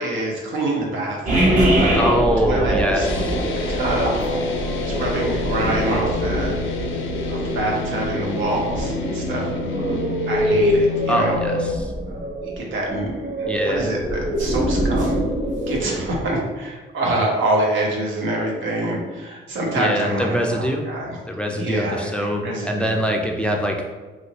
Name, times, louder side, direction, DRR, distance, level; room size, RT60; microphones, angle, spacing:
voice 1, 0.0-1.6 2.4-3.1 3.7-4.2 4.9-6.6 7.3-10.0 10.3-11.4 12.1-15.2 15.7-21.2 21.5-23.0, right 1 dB, 75° right, -1 dB, 0.9 m, -26 dB
sound 1, 1.3-16.3, right 1 dB, 40° right, 0.9 m, -23 dB
voice 2, 1.9-3.3 11.1-11.9 13.5-13.9 19.7-20.8 21.3-23.8, equal, 5° left, 1 dB, 0.3 m, -23 dB
sound 2, 3.0-11.7, left 6 dB, 80° left, 0.5 m, -30 dB
3.1 x 2.6 x 2.9 m, 1.3 s
cardioid pair, 90°, 20 cm